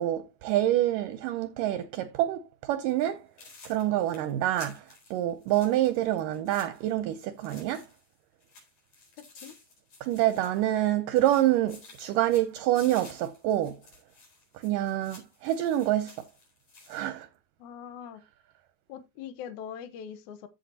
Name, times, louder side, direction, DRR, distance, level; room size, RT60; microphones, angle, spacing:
voice 1, 0.0-3.2 3.7-4.9 5.1-7.9 10.0-13.8 14.5-16.1 16.9-17.3, right 13 dB, 75° right, 2.1 m, -27 dB
sound 1, 2.9-3.1 3.4-8.1 8.4-10.9 11.2-17.1, left 3 dB, 45° left, 5.4 m, -53 dB
voice 2, 9.2-9.5 17.6-18.2 18.9-20.5, left 8 dB, 65° left, 2.2 m, -42 dB
14.5 x 6.4 x 2.8 m
omnidirectional pair, 4.3 m